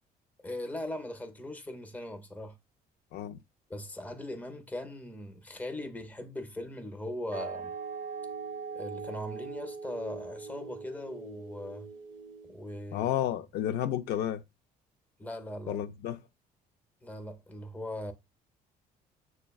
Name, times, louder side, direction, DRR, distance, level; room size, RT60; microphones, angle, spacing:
voice 1, 0.4-2.6 3.7-7.7 8.7-11.9 12.4-13.1 15.2-15.8 17.0-18.1, left 1 dB, 10° left, 0.6 m, -39 dB
sound 1, 7.3-12.7, right 5 dB, 50° right, 0.6 m, -41 dB
voice 2, 12.9-14.4 15.7-16.2, left 11 dB, 75° left, 0.4 m, -31 dB
6.2 x 2.2 x 2.2 m
cardioid pair, 110°, 17 cm